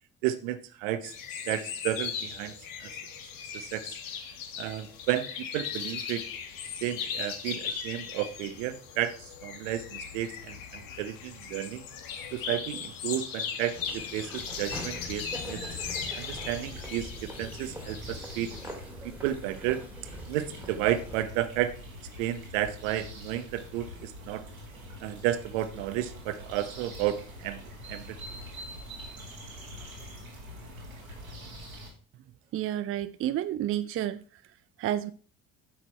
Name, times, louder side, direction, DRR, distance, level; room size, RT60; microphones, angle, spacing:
voice 1, 0.2-1.1 1.5-2.5 2.8-3.0 3.5-4.0 4.6-5.3 5.5-6.2 6.8-11.8 12.3-15.6 16.2-18.5 19.0-19.8 20.3-21.7 22.2-24.4 25.0-27.6 27.9-28.2, right 12 dB, 65° right, 1.0 m, -32 dB
sound 1, 1.0-18.7, left 7 dB, 55° left, 1.4 m, -38 dB
Laughter / Walk footsteps, 13.7-21.2, left 1 dB, 5° right, 2.3 m, -43 dB
sound 2, 14.3-31.9, equal, 85° right, 2.1 m, -44 dB
voice 2, 32.5-34.4 34.8-35.1, right 12 dB, 35° right, 0.5 m, -30 dB
8.6 x 5.8 x 4.4 m
figure-of-eight pair, 55°, 40 cm